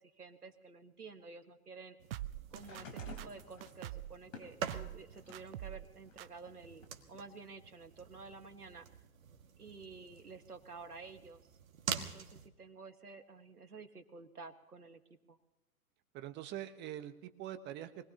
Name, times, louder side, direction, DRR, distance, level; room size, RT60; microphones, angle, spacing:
voice 1, 0.2-2.0 2.5-8.9 9.6-11.5 12.0-15.0 15.3-15.4, right 4 dB, 90° right, 7 dB, 1.7 m, -51 dB
sound 1, 2.0-12.5, right 7 dB, 60° right, 1.8 m, -47 dB
sound 2, 2.1-4.2 4.7-5.0 5.3-5.9 6.2-6.3, right 13 dB, 40° right, 0.6 m, -44 dB
sound 3, 2.5-5.6 6.1-7.2 8.2-8.3, left 5 dB, 60° left, 3.6 m, -54 dB
voice 2, 16.1-18.1, right 12 dB, 25° right, 10 dB, 1.1 m, -44 dB
24.5 x 19.0 x 2.9 m, 1.0 s
figure-of-eight pair, 115°, 44 cm